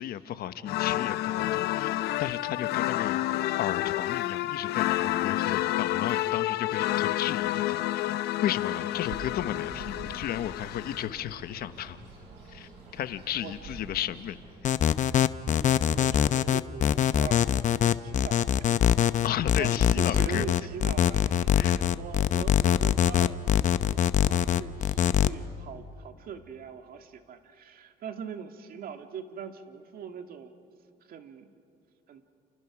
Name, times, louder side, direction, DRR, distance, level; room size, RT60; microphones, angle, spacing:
voice 1, 0.0-3.2 3.6-8.0 8.4-12.0 12.5-14.4 19.2-20.5 21.6-21.8, left 11 dB, 65° left, 12 dB, 1.1 m, -34 dB
sound 1, 0.6-11.1, left 15 dB, 80° left, 0.7 m, -29 dB
Bird, 8.9-14.8, right 3 dB, 85° right, 7.8 m, -47 dB
sound 2, 14.6-25.3, left 10 dB, 45° left, 0.8 m, -23 dB
voice 2, 15.6-18.8 19.6-30.6 31.0-31.5 32.1-32.2, right 7 dB, 60° right, 7 dB, 1.9 m, -42 dB
30.0 x 29.5 x 6.1 m, 2.4 s
cardioid pair, 110°, 17 cm